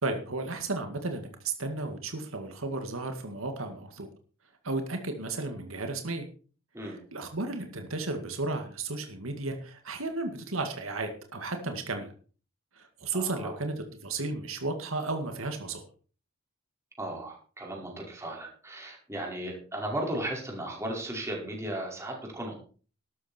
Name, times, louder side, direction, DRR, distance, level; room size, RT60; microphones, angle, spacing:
voice 1, 0.0-4.1 4.6-6.3 6.8-12.1 12.8-15.8, right 3 dB, 80° right, 5 dB, 2.1 m, -34 dB
voice 2, 13.1-13.5 17.0-22.5, right 1 dB, 15° right, -1 dB, 5.2 m, -36 dB
13.5 x 12.5 x 4.5 m, 0.40 s
head